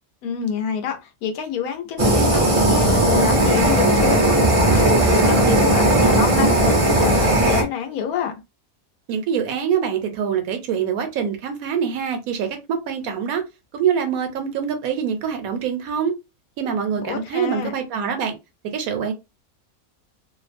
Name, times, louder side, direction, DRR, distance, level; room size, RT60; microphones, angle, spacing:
voice 1, 0.2-8.3 17.0-17.7, left 7 dB, 80° left, 1.1 m, -27 dB
Fire, 2.0-7.6, right 1 dB, 45° right, 0.4 m, -17 dB
voice 2, 9.1-13.4 13.7-16.1 16.6-18.4 18.7-19.1, right 7 dB, 75° right, 1.1 m, -24 dB
2.8 x 2.0 x 2.5 m
omnidirectional pair, 1.5 m